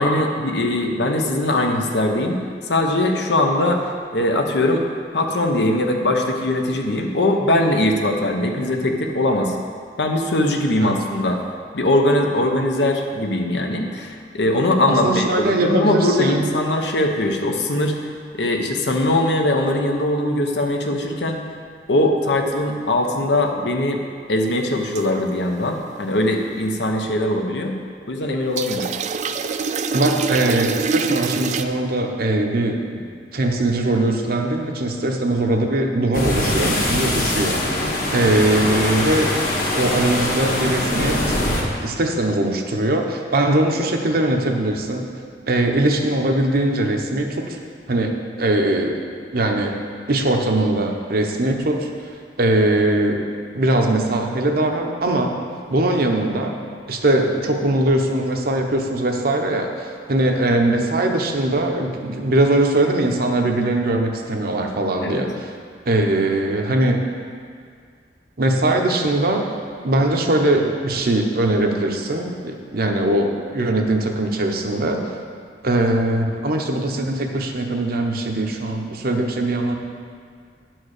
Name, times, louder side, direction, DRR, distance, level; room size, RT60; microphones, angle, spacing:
voice 1, 0.0-2.4 2.7-3.8 4.1-4.8 5.1-9.5 10.0-11.4 11.7-18.0 18.3-21.4 21.9-24.0 24.3-27.8 28.1-28.9 65.0-65.3, left 1 dB, 70° left, 3 dB, 0.9 m, -21 dB
voice 2, 14.9-16.4 29.9-33.0 33.3-39.3 39.8-41.4 41.8-45.1 45.5-47.6 47.9-49.1 49.3-49.8 50.1-51.9 52.4-53.2 53.5-55.3 55.7-56.5 56.9-65.5 65.9-67.0 68.4-69.6 69.8-75.0 75.6-79.8, right 1 dB, 55° right, 2 dB, 0.9 m, -21 dB
sound 1, 24.9-25.2 28.6-31.6, right 5 dB, 40° right, 0.3 m, -25 dB
sound 2, 36.1-41.6, left 1 dB, 50° left, 1.5 m, -22 dB
10.0 x 4.6 x 6.5 m, 2.1 s
head